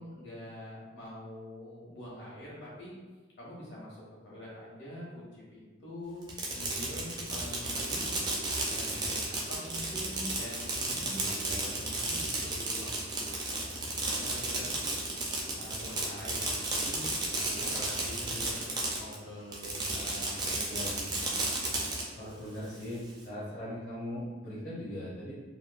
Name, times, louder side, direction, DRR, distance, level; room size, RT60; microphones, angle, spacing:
voice 1, 0.0-2.9 3.4-8.0 8.6-14.9 15.5-17.0 17.4-20.9 22.2-22.6, left 1 dB, 75° left, -7 dB, 1.1 m, -45 dB
Fireworks, 6.2-19.2 19.5-22.0, right 2 dB, 20° right, 0.3 m, -33 dB
voice 2, 11.0-12.1 15.5-16.1 20.6-21.7 22.2-25.3, left 1 dB, 50° left, -10 dB, 0.6 m, -41 dB
2.9 x 2.2 x 2.4 m, 1.3 s
head